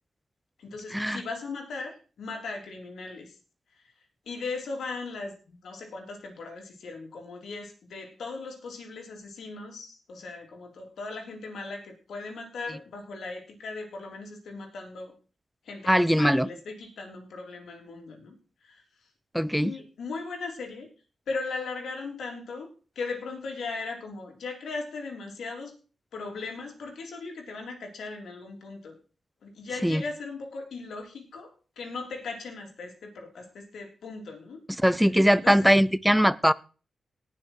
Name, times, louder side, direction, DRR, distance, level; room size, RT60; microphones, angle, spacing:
voice 1, 0.6-3.3 4.3-15.1 15.7-18.4 18.6-18.8 19.6-20.9 21.3-22.7 23.0-25.7 26.1-29.0 29.4-34.6 35.3-35.7, left 3 dB, 85° left, 2 dB, 3.6 m, -38 dB
voice 2, 15.9-16.5 19.3-19.7 29.8-30.0 34.8-36.5, equal, ahead, 18 dB, 0.5 m, -21 dB
19.0 x 6.6 x 4.6 m, 0.36 s
wide cardioid pair, 100°, 0 cm